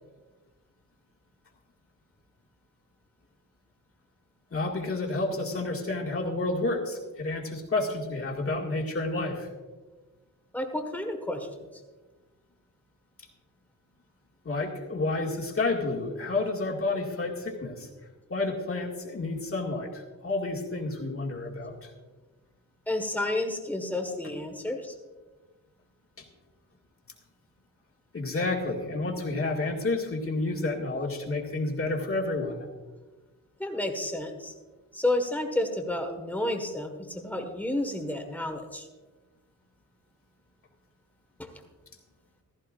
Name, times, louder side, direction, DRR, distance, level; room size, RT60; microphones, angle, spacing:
voice 1, 4.5-9.5 14.4-17.9 18.3-21.9 24.2-24.3 26.2-26.3 28.1-32.7, left 2 dB, 45° left, -1 dB, 2.1 m, -30 dB
voice 2, 10.5-11.7 22.9-24.9 33.6-34.5 34.9-38.9 41.4-41.5, left 1 dB, 5° left, 3 dB, 1.6 m, -31 dB
15.5 x 14.0 x 2.5 m, 1.3 s
wide cardioid pair, 130°, 32 cm